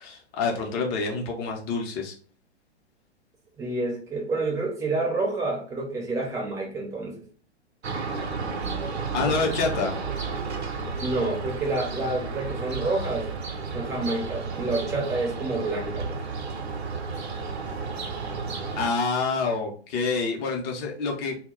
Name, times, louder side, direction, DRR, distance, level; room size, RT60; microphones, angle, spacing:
voice 1, 0.0-2.1 9.1-9.9 18.8-21.4, left 4 dB, 30° left, 0 dB, 0.7 m, -27 dB
voice 2, 3.6-7.2 9.2-9.3 11.0-13.3 13.7-16.2, right 2 dB, 10° right, -1 dB, 0.6 m, -28 dB
sound 1, 7.8-18.9, right 4 dB, 70° right, 0.6 m, -32 dB
2.2 x 2.1 x 3.6 m, 0.42 s
figure-of-eight pair, 110°, 34 cm